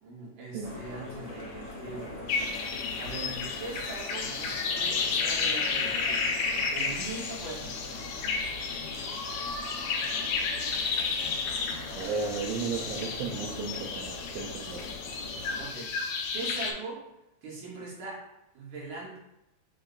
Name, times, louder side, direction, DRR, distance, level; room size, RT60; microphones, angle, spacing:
voice 1, 0.0-6.2 6.7-8.2 15.6-17.0 17.4-18.2 18.5-19.2, right 3 dB, 50° right, -5 dB, 2.0 m, -41 dB
sound 1, 0.6-15.6, left 2 dB, 60° left, 2.3 m, -42 dB
sound 2, 2.3-16.7, left 5 dB, 85° left, 1.3 m, -32 dB
voice 2, 12.0-14.8, right 5 dB, 80° right, -2 dB, 1.6 m, -34 dB
6.7 x 3.3 x 2.2 m, 0.88 s
omnidirectional pair, 3.4 m